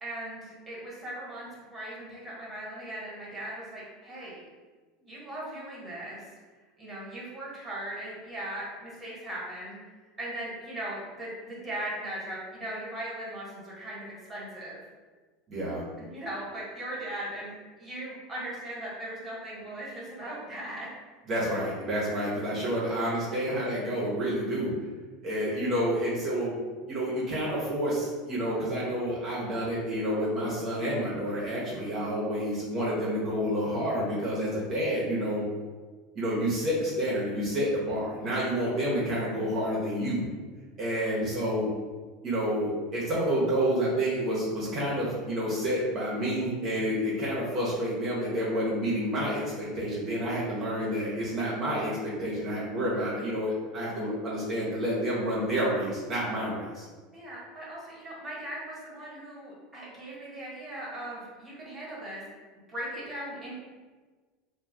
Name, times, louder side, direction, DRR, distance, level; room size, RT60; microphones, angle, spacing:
voice 1, 0.0-4.4 5.0-6.2 6.8-9.8 10.2-14.8 16.0-20.9 23.3-23.4 52.9-53.1 57.1-62.2 62.7-63.5, right 1 dB, 20° right, -6 dB, 1.2 m, -39 dB
voice 2, 15.5-15.8 21.3-24.7 25.2-26.6 26.9-35.4 36.1-40.2 40.8-41.7 42.2-56.9, equal, 45° right, -6 dB, 0.8 m, -29 dB
2.3 x 2.1 x 3.4 m, 1.4 s
hypercardioid pair, 85°, 0 cm